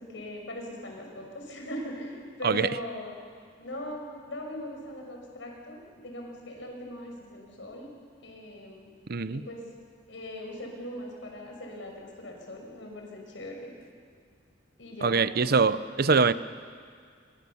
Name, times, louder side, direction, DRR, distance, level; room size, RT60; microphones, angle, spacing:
voice 1, 0.0-3.2 3.6-7.9 8.2-8.9 9.3-9.6 10.1-13.7 14.8-15.8, equal, 80° left, 1 dB, 5.9 m, -40 dB
voice 2, 9.1-9.4 15.0-16.3, right 4 dB, 55° right, 14 dB, 0.7 m, -23 dB
26.0 x 22.5 x 7.1 m, 2.1 s
head